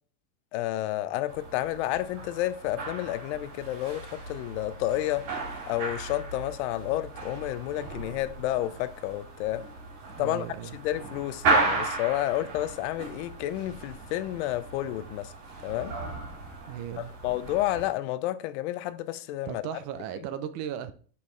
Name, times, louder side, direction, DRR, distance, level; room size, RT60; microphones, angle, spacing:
voice 1, 0.5-5.3 5.7-9.7 10.2-10.5 10.7-15.3 15.6-16.0 17.0-19.8, left 14 dB, 45° left, 0.5 m, -30 dB
sound 1, 1.3-17.9, right 3 dB, 60° right, 3.5 m, -35 dB
voice 2, 10.1-10.8 16.7-17.1 19.4-20.9, right 10 dB, 35° right, 0.5 m, -36 dB
6.5 x 5.5 x 3.1 m
supercardioid pair, 140°, 48 cm